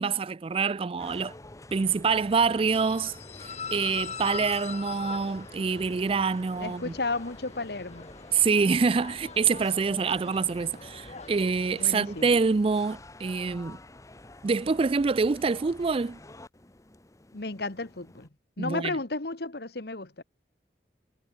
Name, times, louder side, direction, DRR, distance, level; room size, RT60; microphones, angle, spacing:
voice 1, 0.0-1.3 1.7-3.1 3.7-6.9 8.3-13.8 14.4-16.2 18.6-18.9, right 5 dB, 30° right, 0.4 m, -26 dB
sound 1, 1.0-18.3, left 2 dB, 20° left, 1.0 m, -49 dB
sound 2, 2.7-12.3, left 6 dB, 40° left, 2.3 m, -42 dB
voice 2, 6.6-8.1 11.8-12.3 17.3-18.3 18.6-20.2, left 3 dB, 65° left, 1.6 m, -33 dB
head